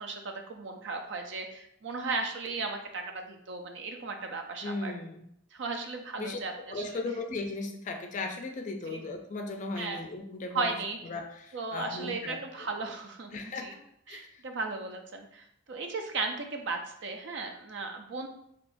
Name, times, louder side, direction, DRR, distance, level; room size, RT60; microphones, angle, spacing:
voice 1, 0.0-4.9 5.5-7.0 8.9-9.0 9.8-10.0 10.5-11.0 11.5-13.7 14.1-18.3, right 3 dB, 65° right, 4 dB, 0.5 m, -36 dB
voice 2, 4.6-5.3 6.2-6.4 6.7-10.8 11.0-12.7 13.3-13.8 14.1-14.3, left 3 dB, 40° left, 4 dB, 0.4 m, -37 dB
3.4 x 2.8 x 2.5 m, 0.71 s
head